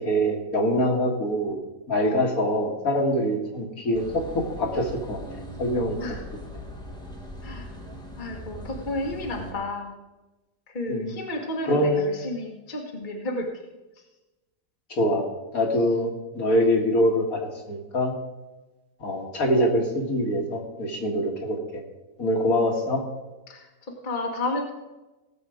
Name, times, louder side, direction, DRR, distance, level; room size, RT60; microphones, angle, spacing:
voice 1, 0.0-1.6 1.9-6.0 10.9-11.1 11.7-12.1 14.9-15.3 15.5-18.1 19.0-21.8 22.2-23.0, equal, 55° left, 1 dB, 2.2 m, -24 dB
sound 1, 3.9-9.5, equal, 5° left, 1.5 m, -40 dB
voice 2, 7.4-7.8 8.2-9.9 10.7-13.6 14.0-14.1 23.5-24.7, left 2 dB, 30° left, 1 dB, 1.5 m, -32 dB
17.5 x 7.1 x 5.0 m, 1.1 s
omnidirectional pair, 1.8 m